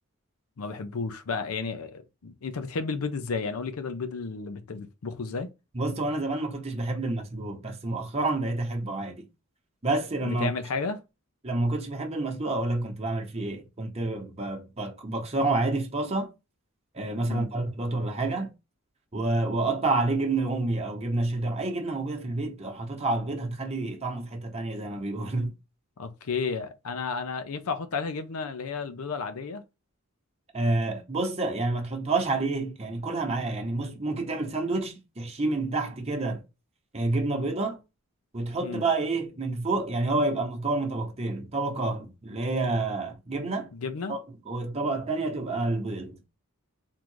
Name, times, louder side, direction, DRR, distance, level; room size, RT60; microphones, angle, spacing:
voice 1, 0.6-5.5 10.2-11.0 17.2-17.5 26.0-29.6 38.6-38.8 43.7-44.2, left 4 dB, 75° left, 0.6 m, -32 dB
voice 2, 5.7-9.3 9.8-10.5 11.4-16.3 16.9-18.5 19.1-25.5 30.5-36.4 36.9-37.8 38.3-43.7 44.1-44.2 44.5-46.2, right 2 dB, 30° right, 1.0 m, -29 dB
3.7 x 2.5 x 4.6 m
head